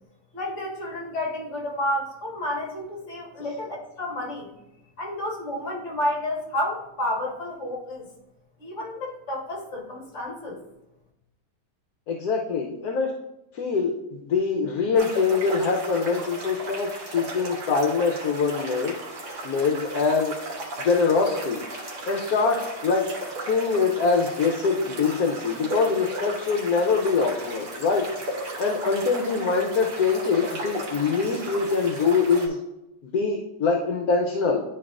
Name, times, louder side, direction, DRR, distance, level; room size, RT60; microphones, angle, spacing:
voice 1, 0.3-4.5 5.0-8.1 8.6-10.6, left 1 dB, 45° left, -2 dB, 1.9 m, -30 dB
voice 2, 12.1-13.1 13.5-18.9 19.4-20.3 20.8-21.6 22.0-23.1 23.4-28.1 28.6-32.6 33.0-34.6, left 4 dB, 70° left, 0 dB, 1.2 m, -24 dB
sound 1, 14.9-32.5, right 1 dB, 85° right, 2.1 m, -36 dB
11.0 x 4.7 x 2.4 m, 0.90 s
omnidirectional pair, 1.7 m